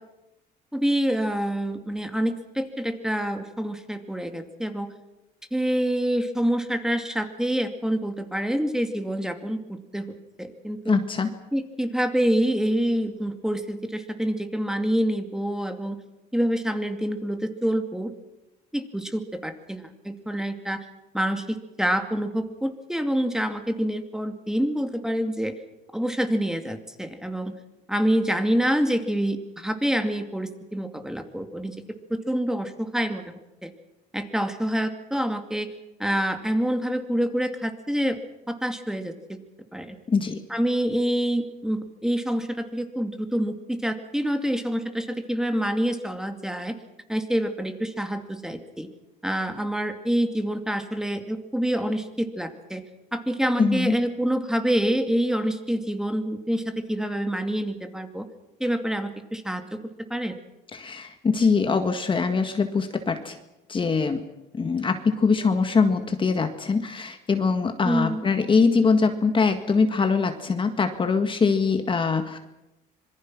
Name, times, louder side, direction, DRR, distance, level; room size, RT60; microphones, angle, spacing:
voice 1, 0.7-4.9 5.5-10.1 10.4-11.0 11.5-16.0 16.3-18.1 18.7-20.9 21.1-25.5 25.9-27.5 27.9-31.7 32.1-33.7 34.1-35.7 36.0-38.2 38.5-39.4 39.7-40.0 40.5-46.8 47.1-48.9 49.2-52.8 53.1-58.3 58.6-59.8 60.1-60.3 67.8-68.2, equal, 5° right, 7 dB, 2.4 m, -26 dB
voice 2, 10.9-11.3 40.1-40.4 53.6-54.0 60.7-63.4 63.7-64.2 64.5-72.4, left 4 dB, 30° left, 7 dB, 1.8 m, -23 dB
26.0 x 22.5 x 6.2 m, 0.95 s
cardioid pair, 110°, 17 cm